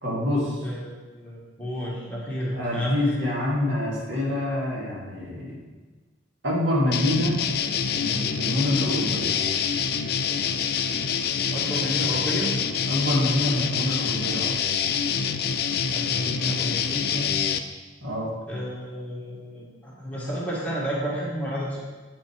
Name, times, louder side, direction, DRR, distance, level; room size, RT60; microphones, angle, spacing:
voice 1, 0.0-0.6 2.6-5.6 6.4-7.4 7.9-9.4 12.9-14.5 18.0-18.3, left 1 dB, 75° right, -5 dB, 2.4 m, -26 dB
voice 2, 0.6-3.1 11.5-12.5 15.9-17.3 18.5-21.8, equal, 10° left, -6 dB, 1.9 m, -31 dB
sound 1, 6.9-17.6, left 7 dB, 55° left, 0.4 m, -26 dB
8.8 x 5.8 x 4.7 m, 1.3 s
head